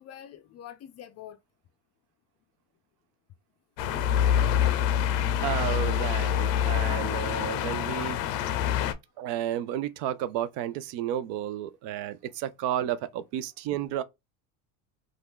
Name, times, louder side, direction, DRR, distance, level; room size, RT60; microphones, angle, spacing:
voice 1, 0.0-1.4 4.9-5.4 6.4-7.4, left 10 dB, 35° left, 0.4 m, -48 dB
sound 1, 3.8-8.9, left 10 dB, 85° left, 0.6 m, -26 dB
voice 2, 5.4-8.2 9.2-14.0, right 11 dB, 60° right, 0.5 m, -32 dB
2.7 x 2.4 x 3.5 m
supercardioid pair, 90°, 48 cm